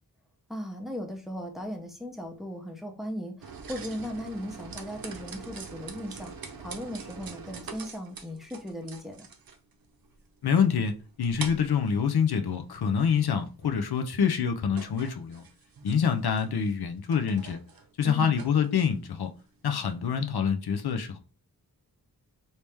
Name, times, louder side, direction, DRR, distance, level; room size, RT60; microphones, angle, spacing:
voice 1, 0.5-9.3 18.0-18.3, equal, ahead, 0.7 m, -37 dB
sound 1, 3.4-20.4, right 5 dB, 65° right, 0.6 m, -45 dB
voice 2, 10.4-15.4 15.8-17.6 18.0-19.3 19.6-21.2, left 7 dB, 80° left, 0.6 m, -26 dB
3.1 x 2.8 x 3.3 m
wide cardioid pair, 60°, 37 cm